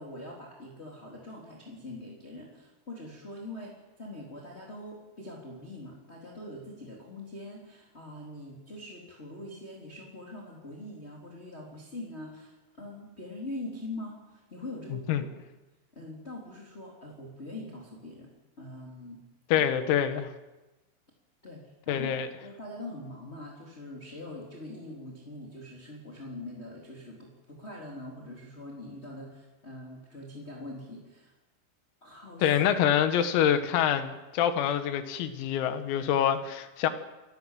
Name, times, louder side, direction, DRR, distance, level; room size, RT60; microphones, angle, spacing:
voice 1, 0.0-15.3 15.9-19.2 19.5-19.7 21.4-22.1 22.4-31.3 32.0-32.4, left 1 dB, 15° left, -2 dB, 3.3 m, -43 dB
voice 2, 14.9-15.2 19.5-20.3 21.9-22.3 32.4-36.9, left 9 dB, 85° left, 9 dB, 4.3 m, -26 dB
28.5 x 19.0 x 7.7 m, 1.1 s
omnidirectional pair, 5.9 m